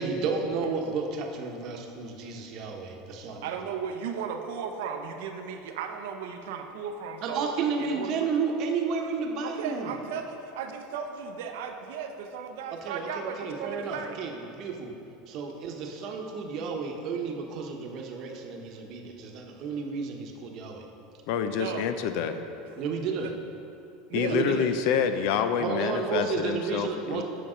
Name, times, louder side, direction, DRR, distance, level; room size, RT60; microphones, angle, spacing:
voice 1, 0.0-3.5 7.2-9.9 12.7-14.9 15.3-20.9 22.8-23.3 24.2-24.7 25.6-27.2, right 5 dB, 50° right, 2 dB, 1.0 m, -32 dB
voice 2, 3.4-7.5 7.8-8.1 9.4-14.2 21.4-21.9 22.7-22.8 23.2-23.3 24.1-24.6, right 6 dB, 80° right, 5 dB, 0.7 m, -36 dB
voice 3, 21.3-22.3 24.1-27.2, left 7 dB, 65° left, 9 dB, 0.5 m, -27 dB
8.7 x 5.4 x 5.0 m, 2.8 s
supercardioid pair, 135°, 0 cm